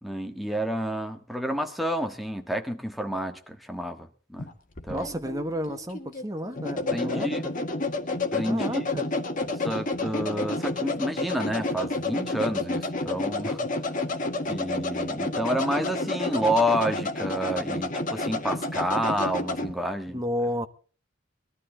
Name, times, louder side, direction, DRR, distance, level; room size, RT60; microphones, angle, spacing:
voice 1, 0.0-4.5 4.8-5.1 6.9-7.5 8.3-8.8 9.6-13.7 14.5-20.2, equal, ahead, 1.5 m, -29 dB
sound 1, 4.4-19.7, left 2 dB, 40° left, 1.7 m, -30 dB
voice 2, 4.9-7.5 8.5-9.1 20.1-20.7, equal, 20° right, 1.3 m, -32 dB
21.0 x 13.0 x 3.9 m
head